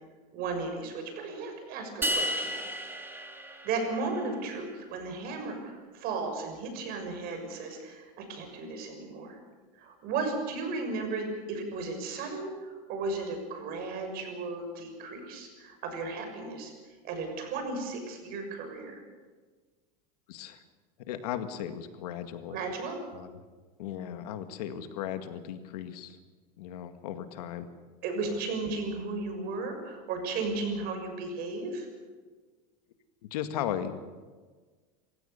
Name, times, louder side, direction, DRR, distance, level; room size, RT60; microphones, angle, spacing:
voice 1, 0.3-2.5 3.6-9.4 9.8-16.7 17.0-19.0 22.5-23.0 28.0-31.9, right 3 dB, 50° right, 5 dB, 6.5 m, -35 dB
sound 1, 2.0-4.3, equal, 10° right, 2.3 m, -33 dB
voice 2, 20.3-20.6 21.1-22.6 23.1-23.3 23.8-26.2 26.6-27.7 33.2-34.0, left 10 dB, 80° left, 9 dB, 2.0 m, -36 dB
28.0 x 16.0 x 6.9 m, 1.4 s
supercardioid pair, 125°, 20 cm